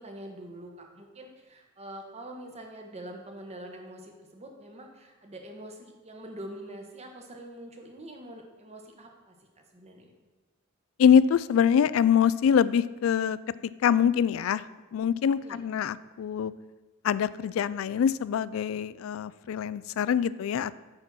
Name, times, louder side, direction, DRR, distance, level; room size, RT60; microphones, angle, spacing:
voice 1, 0.0-10.1 15.4-15.6, right 1 dB, 30° right, 2 dB, 1.2 m, -44 dB
voice 2, 11.0-13.4 13.8-14.6 14.9-16.5 17.0-20.8, left 8 dB, 75° left, 18 dB, 0.3 m, -24 dB
8.9 x 4.2 x 6.0 m, 1.2 s
head